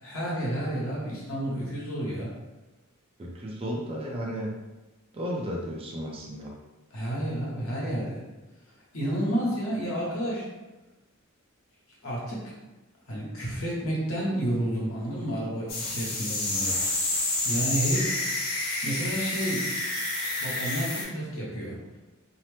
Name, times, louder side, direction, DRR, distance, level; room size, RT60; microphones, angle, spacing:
voice 1, 0.0-2.3 6.9-8.2 8.9-10.5 12.0-12.5 13.1-16.8 17.4-18.2 18.8-19.7 20.4-21.8, right 1 dB, 75° left, -5 dB, 1.0 m, -30 dB
voice 2, 3.2-4.5 5.1-6.5, equal, 25° right, -2 dB, 0.4 m, -33 dB
sound 1, 15.7-21.0, left 2 dB, 45° left, 0.7 m, -29 dB
2.7 x 2.0 x 3.2 m, 1.1 s
head